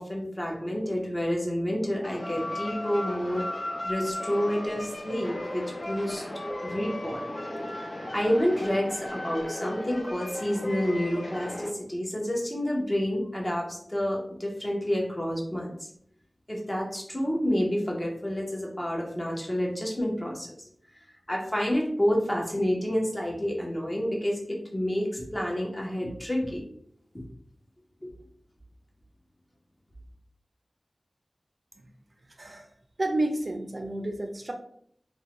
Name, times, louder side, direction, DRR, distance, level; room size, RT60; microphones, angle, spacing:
voice 1, 0.0-3.5 3.8-6.2 6.6-7.3 8.1-15.9 16.5-20.5 21.3-26.6 27.1-27.2 28.0-28.2, equal, 25° left, -2 dB, 0.8 m, -29 dB
sound 1, 2.0-11.7, left 1 dB, 40° left, 0.4 m, -36 dB
voice 2, 32.4-32.7 33.0-34.5, right 1 dB, 55° right, 3 dB, 0.4 m, -30 dB
2.5 x 2.1 x 2.9 m, 0.65 s
wide cardioid pair, 50°, 0 cm